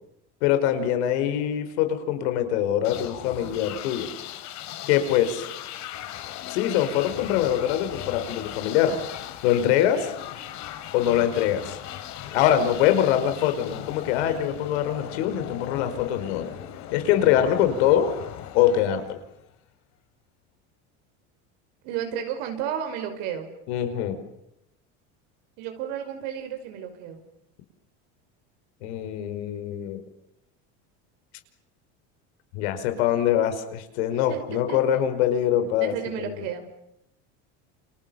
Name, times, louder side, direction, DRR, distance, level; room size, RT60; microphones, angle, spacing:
voice 1, 0.4-4.1 4.9-5.5 6.5-9.0 9.4-10.1 10.9-11.8 12.3-16.5 16.9-18.1 18.5-19.2 23.7-24.2 28.8-30.0 32.5-36.3, left 10 dB, 80° left, 9 dB, 5.4 m, -23 dB
sound 1, 2.8-19.6, left 12 dB, 55° left, 3.8 m, -38 dB
voice 2, 21.8-23.5 25.6-27.2 34.3-34.8 35.8-36.6, right 9 dB, 75° right, 5 dB, 5.6 m, -32 dB
29.5 x 28.0 x 7.2 m, 0.83 s
supercardioid pair, 125°, 33 cm